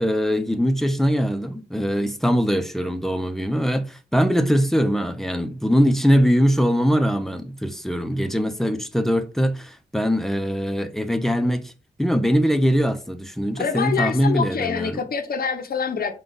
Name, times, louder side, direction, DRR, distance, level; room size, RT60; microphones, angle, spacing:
voice 1, 0.0-11.7 12.0-15.0, equal, ahead, 0.5 m, -22 dB
voice 2, 13.6-16.1, left 6 dB, 60° left, 0.6 m, -26 dB
5.0 x 2.3 x 3.8 m
wide cardioid pair, 105°, 17 cm